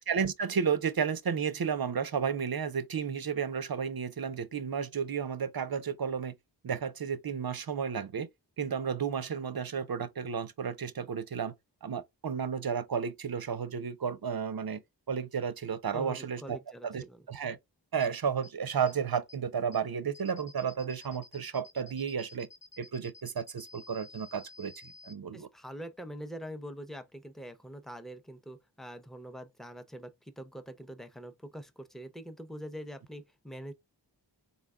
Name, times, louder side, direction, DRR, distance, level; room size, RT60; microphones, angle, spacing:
voice 1, 0.1-6.3 6.6-8.3 8.6-11.5 11.8-14.8 15.1-16.6 16.8-17.6 17.9-22.5 22.8-25.5, right 6 dB, 55° right, 0.5 m, -32 dB
voice 2, 15.9-17.2 25.3-33.7, equal, ahead, 0.6 m, -44 dB
sound 1, 18.0-18.1 18.4-18.5 18.9-19.0 19.3-19.4 19.7-19.8 20.1-25.1, left 3 dB, 50° left, 0.8 m, -52 dB
4.2 x 2.2 x 3.6 m
wide cardioid pair, 45°, 44 cm